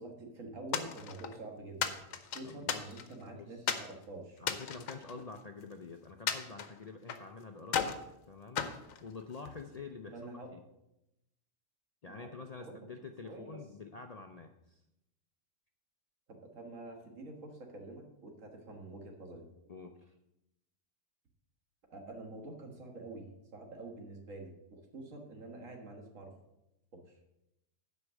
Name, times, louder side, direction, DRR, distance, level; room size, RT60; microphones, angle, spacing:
voice 1, 0.0-4.4 10.1-10.5 12.1-12.9 13.2-13.6 16.3-19.5 21.9-26.3 26.9-27.2, right 2 dB, 75° right, 2 dB, 1.9 m, -47 dB
sound 1, 0.7-1.4 1.8-3.2 3.7-3.9 4.4-5.7 6.3-7.3 7.7-8.1 8.6-9.6, left 7 dB, 80° left, 1.2 m, -36 dB
voice 2, 2.4-3.0 3.3-3.5 4.4-7.9 8.3-10.1 10.5-10.6 12.0-14.8 19.7-20.1, left 4 dB, 55° left, 5 dB, 0.4 m, -47 dB
8.1 x 5.3 x 7.2 m, 0.88 s
omnidirectional pair, 1.4 m